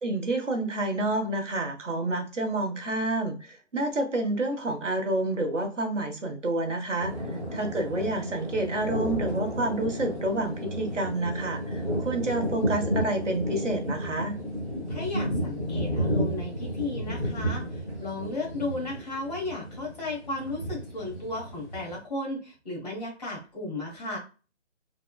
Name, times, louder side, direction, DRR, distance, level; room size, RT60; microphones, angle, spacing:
voice 1, 0.0-7.1 7.5-14.4, right 2 dB, 80° right, 4 dB, 0.9 m, -29 dB
sound 1, 7.0-22.0, equal, 15° left, 0.6 m, -32 dB
voice 2, 14.9-24.2, left 2 dB, 35° left, -1 dB, 1.2 m, -34 dB
3.6 x 2.1 x 2.2 m, 0.33 s
figure-of-eight pair, 145°, 36 cm